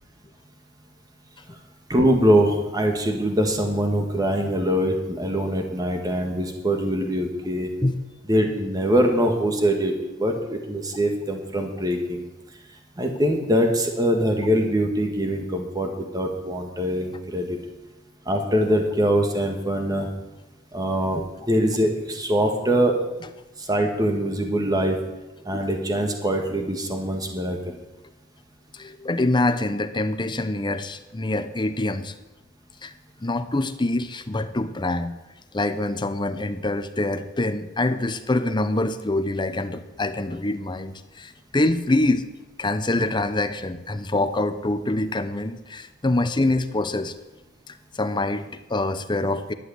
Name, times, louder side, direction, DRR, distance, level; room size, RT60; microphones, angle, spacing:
voice 1, 1.9-7.7 8.3-12.2 13.0-17.6 18.2-20.1 20.7-21.2 21.5-22.9 23.6-25.0 25.4-27.7, equal, 20° right, 3 dB, 1.7 m, -23 dB
voice 2, 28.7-32.1 32.8-32.9 33.2-35.1 35.5-42.3 42.6-47.1 47.7-49.5, left 2 dB, 25° left, 10 dB, 0.7 m, -25 dB
12.0 x 8.1 x 8.0 m, 1.1 s
head